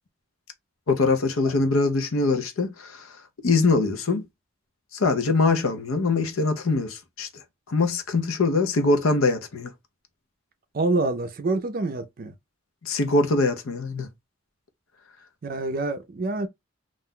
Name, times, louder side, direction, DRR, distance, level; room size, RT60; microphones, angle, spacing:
voice 1, 0.9-3.2 3.4-4.3 4.9-7.3 7.7-9.7 12.8-14.1, left 3 dB, 85° left, 0.6 m, -23 dB
voice 2, 10.7-12.3 15.4-16.5, right 2 dB, 45° right, 0.4 m, -26 dB
2.4 x 2.2 x 3.6 m
head